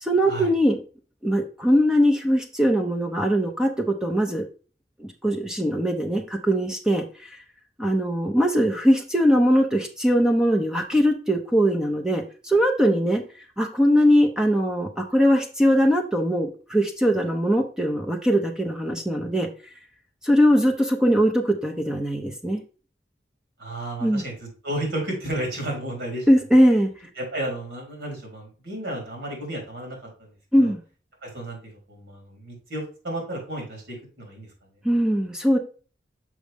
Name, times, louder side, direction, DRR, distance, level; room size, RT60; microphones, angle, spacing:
voice 1, 0.0-0.8 1.2-4.5 5.0-7.0 7.8-13.2 13.6-19.5 20.2-22.6 24.0-24.2 26.3-26.9 30.5-30.8 34.8-35.6, equal, 5° right, 3 dB, 0.7 m, -21 dB
voice 2, 23.6-26.3 27.2-30.7 31.2-31.6 31.9-34.5, right 1 dB, 80° right, 0 dB, 3.7 m, -33 dB
6.2 x 5.4 x 3.5 m, 0.36 s
head